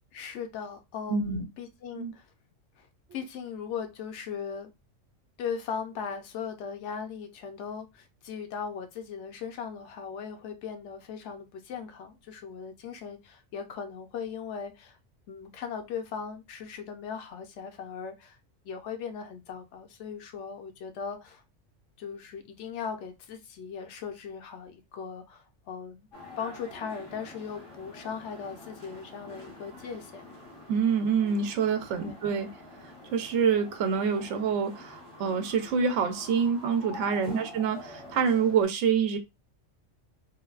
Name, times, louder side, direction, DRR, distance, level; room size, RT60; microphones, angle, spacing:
voice 1, 0.1-2.3 2.8-4.7 5.4-15.0 15.3-18.4 18.6-21.4 22.0-26.1 26.4-30.3 32.0-32.1 37.3-37.5, left 6 dB, 70° left, 0.9 m, -38 dB
voice 2, 1.1-1.4 1.9-2.1 30.7-32.5 33.1-39.2, right 6 dB, 70° right, 0.9 m, -26 dB
sound 1, 26.1-38.6, left 2 dB, 85° left, 1.5 m, -47 dB
3.3 x 2.2 x 2.3 m
omnidirectional pair, 1.3 m